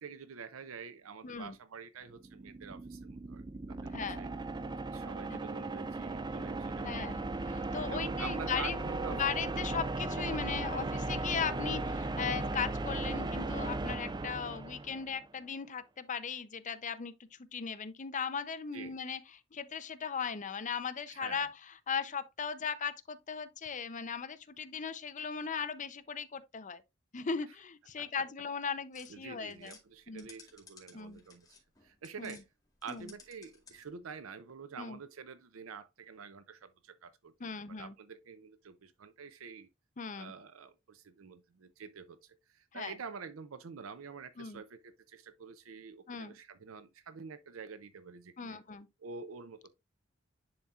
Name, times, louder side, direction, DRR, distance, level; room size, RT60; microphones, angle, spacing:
voice 1, 0.0-3.9 4.2-4.3 4.9-7.2 7.9-9.2 9.6-9.7 18.7-19.0 21.1-21.5 28.0-28.1 29.1-32.4 32.8-39.7 40.1-48.6 49.0-49.7, right 5 dB, 90° right, 0.6 m, -47 dB
voice 2, 1.2-1.6 3.9-4.2 5.3-5.4 6.8-8.8 9.1-26.8 27.1-29.8 30.1-30.3 30.9-31.2 32.2-32.4 32.9-33.1 34.8-35.0 37.4-37.9 40.0-40.3 42.7-42.9 44.4-44.6 46.1-46.4 48.4-48.9, left 6 dB, 40° left, 0.6 m, -38 dB
sound 1, 2.1-15.2, right 2 dB, 20° right, 0.4 m, -37 dB
sound 2, 28.9-32.4 32.8-34.0, left 4 dB, 20° left, 2.1 m, -57 dB
10.5 x 4.3 x 2.4 m
head